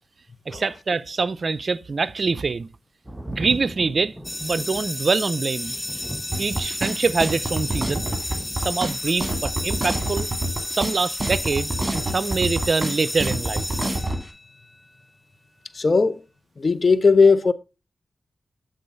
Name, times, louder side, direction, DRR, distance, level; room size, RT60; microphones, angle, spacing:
voice 1, 0.5-2.7 3.3-5.8 6.4-8.1 8.6-10.3 10.7-13.7, right 4 dB, 60° right, 0.4 m, -25 dB
Thunder, 3.0-10.4 11.5-11.6, right 1 dB, 15° right, 1.1 m, -38 dB
sound 1, 4.2-14.7, left 1 dB, 20° left, 1.1 m, -32 dB
sound 2, 6.3-14.2, right 2 dB, 35° right, 2.1 m, -27 dB
voice 2, 15.7-16.2 16.6-17.5, left 4 dB, 50° left, 0.7 m, -17 dB
8.2 x 3.7 x 5.3 m
cardioid pair, 40°, 0 cm